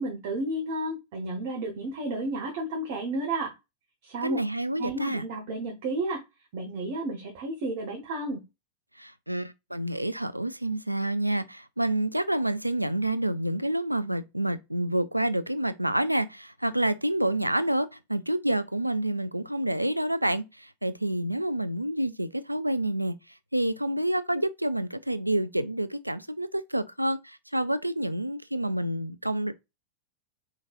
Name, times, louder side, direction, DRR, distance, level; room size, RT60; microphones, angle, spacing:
voice 1, 0.0-3.5 4.0-4.4 4.8-6.2 6.5-8.4, right 2 dB, 50° right, 1.4 m, -32 dB
voice 2, 4.2-5.2 9.0-23.2 23.5-29.6, right 1 dB, 85° right, 0.3 m, -28 dB
5.1 x 3.8 x 2.5 m
figure-of-eight pair, 90°, 0 cm